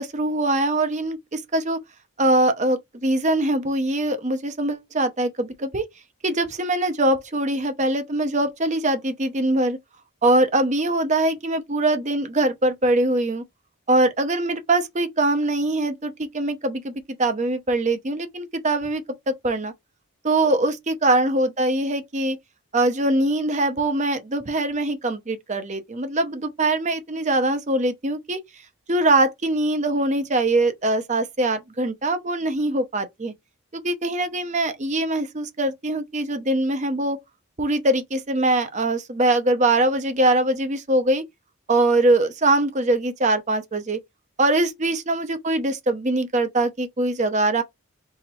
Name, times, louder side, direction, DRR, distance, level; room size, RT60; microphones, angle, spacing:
voice 1, 0.0-1.8 2.2-5.8 6.2-9.8 10.2-13.4 13.9-16.9 17.2-19.7 20.2-22.4 22.7-28.4 28.9-33.3 33.7-37.2 37.6-41.2 41.7-44.0 44.4-47.6, right 2 dB, 30° right, 0.7 m, -22 dB
2.9 x 2.8 x 4.2 m
head